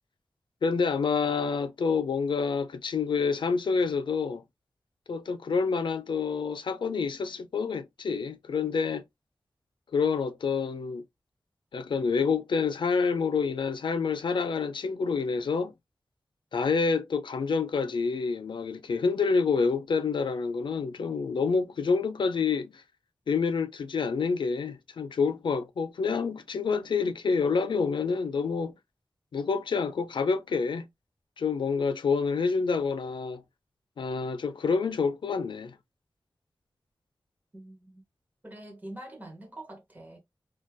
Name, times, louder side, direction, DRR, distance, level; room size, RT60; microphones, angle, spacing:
voice 1, 0.6-4.4 5.1-9.0 9.9-11.0 11.7-15.7 16.5-22.8 23.3-28.7 29.3-30.9 31.4-33.4 34.0-35.7, left 5 dB, 80° left, 0.5 m, -28 dB
voice 2, 37.5-38.0 38.4-40.2, right 1 dB, 20° right, 1.0 m, -44 dB
3.8 x 2.3 x 2.2 m
wide cardioid pair, 100°, 8 cm